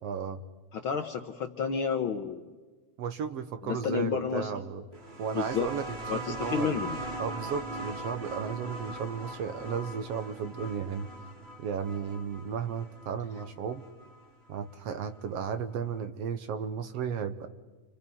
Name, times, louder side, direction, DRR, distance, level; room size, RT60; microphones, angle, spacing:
voice 1, 0.0-0.4 3.0-4.8 5.2-5.8 6.1-6.8 7.2-11.1 11.6-13.8 14.5-17.5, right 7 dB, 65° right, 10 dB, 1.8 m, -34 dB
voice 2, 0.7-2.5 3.6-4.5 5.3-5.7 6.1-7.0, left 6 dB, 60° left, 6 dB, 1.4 m, -31 dB
sound 1, 4.9-14.2 15.3-15.4, right 1 dB, 20° right, 2.4 m, -40 dB
30.0 x 26.5 x 5.5 m, 1.3 s
omnidirectional pair, 3.4 m